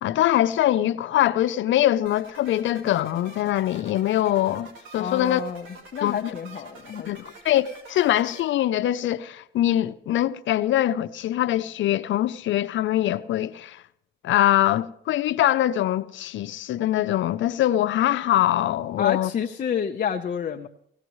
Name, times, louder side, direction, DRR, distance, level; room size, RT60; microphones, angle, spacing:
voice 1, 0.0-4.7 4.9-5.4 6.0-6.3 7.1-13.8 14.2-19.3, left 13 dB, 70° left, 0.6 m, -23 dB
sound 1, 2.0-8.4, right 2 dB, 75° right, 4.4 m, -46 dB
voice 2, 5.0-5.7 5.9-7.1 19.0-20.7, left 7 dB, 45° left, 0.8 m, -29 dB
18.0 x 16.5 x 3.1 m
cardioid pair, 90°, 20 cm